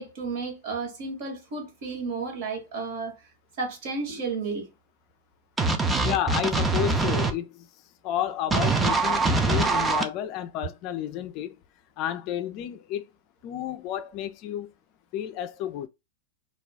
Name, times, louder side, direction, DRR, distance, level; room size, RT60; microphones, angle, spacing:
voice 1, 0.0-3.1 3.6-4.7, right 4 dB, 55° right, 1.2 m, -32 dB
sound 1, 5.6-7.3 8.5-10.0, right 3 dB, 15° right, 0.5 m, -23 dB
voice 2, 6.0-7.7 8.0-11.5 12.0-13.0 13.4-14.7 15.1-15.9, left 11 dB, 45° left, 0.3 m, -31 dB
2.3 x 2.2 x 3.4 m
hypercardioid pair, 105°, 0 cm